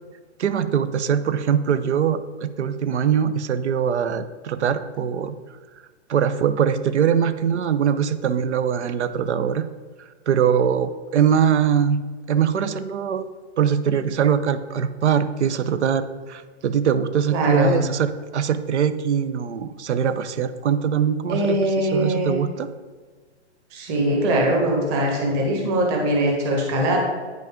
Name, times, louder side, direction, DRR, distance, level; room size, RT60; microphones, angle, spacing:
voice 1, 0.4-5.4 6.1-9.7 10.0-12.0 12.3-13.2 13.6-22.7, right 8 dB, 70° right, 12 dB, 0.7 m, -22 dB
voice 2, 17.3-17.8 21.3-22.4 23.7-27.0, right 1 dB, 20° right, -1 dB, 1.4 m, -21 dB
9.1 x 5.3 x 3.6 m, 1.4 s
hypercardioid pair, 155°, 35 cm